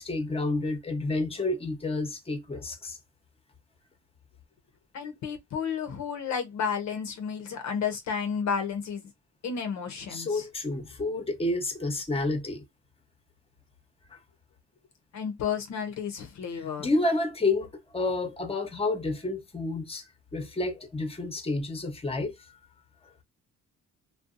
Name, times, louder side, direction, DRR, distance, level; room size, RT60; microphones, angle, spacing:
voice 1, 0.0-3.0 10.1-12.6 14.1-14.2 16.8-17.7 17.9-20.0 20.3-22.6, left 2 dB, 20° left, 0.8 m, -30 dB
voice 2, 4.9-9.0 9.4-10.4 15.1-16.9, left 6 dB, 65° left, 0.7 m, -32 dB
2.6 x 2.2 x 2.5 m
cardioid pair, 90°, 30 cm